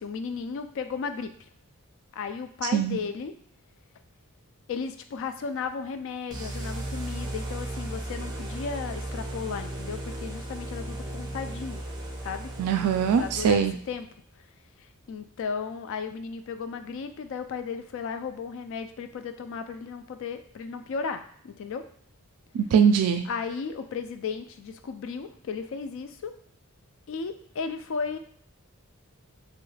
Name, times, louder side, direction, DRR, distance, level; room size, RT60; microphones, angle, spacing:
voice 1, 0.0-1.3 2.1-3.3 4.7-11.8 12.2-12.5 13.2-14.1 15.1-21.8 23.3-26.3 27.1-28.2, left 5 dB, 60° left, 8 dB, 0.3 m, -35 dB
sound 1, 6.3-13.9, right 1 dB, 20° right, 0.5 m, -36 dB
voice 2, 12.6-13.7 22.5-23.2, right 7 dB, 85° right, 11 dB, 0.3 m, -22 dB
3.1 x 2.2 x 3.2 m, 0.63 s
head